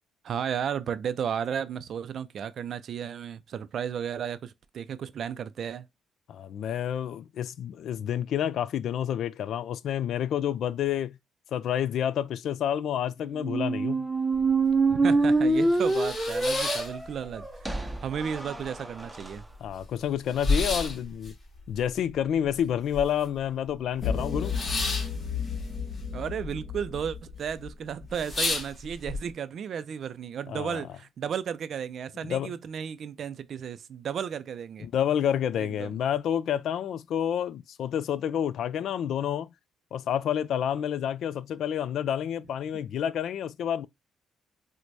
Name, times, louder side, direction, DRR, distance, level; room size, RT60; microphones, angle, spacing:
voice 1, 0.2-5.9 14.9-19.4 26.1-34.9 35.6-35.9, right 8 dB, 60° right, 0.3 m, -34 dB
voice 2, 6.3-11.2 11.5-14.1 19.6-21.3 21.7-24.6 30.5-30.8 32.2-32.5 34.8-39.5 39.9-43.9, left 9 dB, 70° left, 0.3 m, -29 dB
sound 1, 13.4-19.3, right 3 dB, 10° right, 0.6 m, -26 dB
sound 2, 14.4-14.5 14.9-15.0 15.4-17.6 17.9-18.6 19.0-19.1 19.3-23.4 23.7-26.5 26.8-27.3 27.7-27.8 28.1-29.2, left 3 dB, 40° left, 1.7 m, -32 dB
sound 3, 24.0-28.3, left 6 dB, 55° left, 1.0 m, -33 dB
4.5 x 2.1 x 2.5 m
cardioid pair, 90°, 0 cm